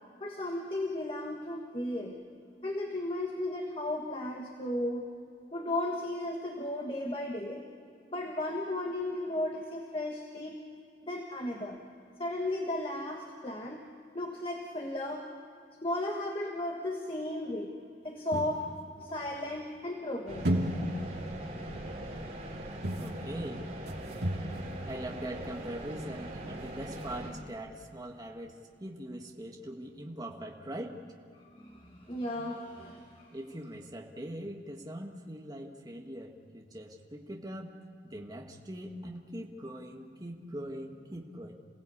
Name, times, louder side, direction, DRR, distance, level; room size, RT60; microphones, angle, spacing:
voice 1, 0.2-2.2 2.6-5.1 5.5-7.6 8.1-10.6 11.0-11.8 12.2-13.9 14.2-15.3 15.8-17.7 18.0-18.6 19.0-20.5 31.4-33.3, left 1 dB, 30° left, 1 dB, 1.6 m, -35 dB
sound 1, 18.3-19.7 20.4-25.5 25.8-25.9 26.2-26.3 26.6-26.7 26.8-27.2, right 1 dB, 60° right, 2.4 m, -36 dB
sound 2, 20.3-27.3, right 1 dB, 40° right, 4.9 m, -41 dB
voice 2, 23.0-23.6 24.8-31.4 33.3-37.7 38.0-41.5, right 1 dB, 20° right, 1 dB, 1.6 m, -42 dB
28.0 x 17.5 x 8.5 m, 2.4 s
head